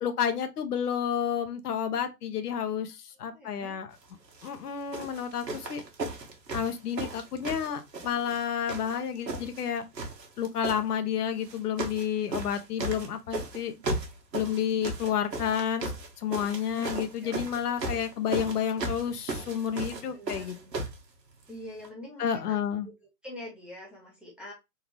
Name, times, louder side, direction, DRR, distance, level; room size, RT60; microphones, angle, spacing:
voice 1, 0.0-3.9 4.4-5.8 6.5-9.8 10.4-13.7 14.3-20.6 22.2-22.9, left 8 dB, 65° left, 0.9 m, -30 dB
voice 2, 3.3-3.8 13.8-13.9 16.6-17.4 20.1-20.8 21.5-22.6 22.8-22.9 23.2-24.5, left 2 dB, ahead, 0.8 m, -44 dB
sound 1, 4.3-4.5 4.9-8.4 8.7-9.7 9.9-10.8 11.4-12.1 12.3-21.0 21.8-21.9, right 2 dB, 90° right, 1.4 m, -35 dB
3.8 x 2.8 x 3.0 m
hypercardioid pair, 135°, 49 cm